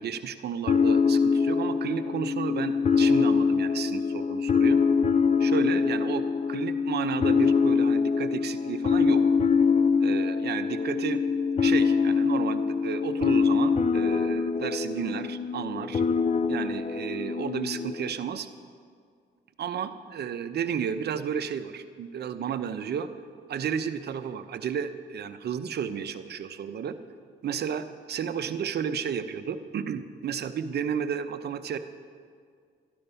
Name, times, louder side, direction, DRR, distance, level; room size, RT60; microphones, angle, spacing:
voice 1, 0.0-4.8 5.4-9.3 10.0-11.2 11.6-16.0 16.5-18.5 19.6-23.1 23.5-27.0 27.4-31.8, right 7 dB, 55° right, 10 dB, 0.8 m, -32 dB
sound 1, 0.7-18.1, left 5 dB, 35° left, 0.5 m, -24 dB
13.0 x 10.5 x 5.6 m, 2.1 s
cardioid pair, 90°, 20 cm